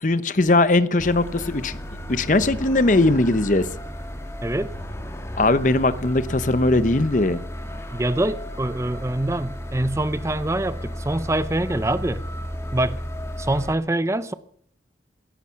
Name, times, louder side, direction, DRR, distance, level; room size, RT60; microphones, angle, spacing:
voice 1, 0.0-1.8 2.1-3.7 5.4-7.4, left 2 dB, 45° left, 0.8 m, -19 dB
sound 1, 1.0-13.8, equal, 15° left, 1.8 m, -34 dB
voice 2, 4.4-4.7 7.9-12.2 12.7-13.0 13.4-14.3, right 1 dB, 15° right, 0.6 m, -24 dB
17.0 x 14.0 x 5.8 m
head